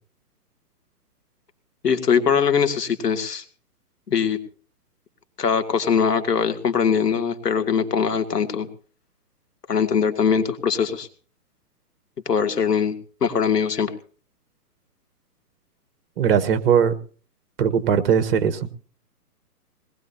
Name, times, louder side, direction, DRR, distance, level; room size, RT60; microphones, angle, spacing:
voice 1, 1.8-3.4 4.1-4.4 5.4-8.7 9.7-11.1 12.3-12.9 13.2-13.9, left 6 dB, 90° left, 7 dB, 2.7 m, -21 dB
voice 2, 16.2-17.0 17.6-18.7, right 7 dB, 35° right, 11 dB, 1.4 m, -19 dB
21.5 x 19.5 x 2.8 m, 0.41 s
hypercardioid pair, 155°, 47 cm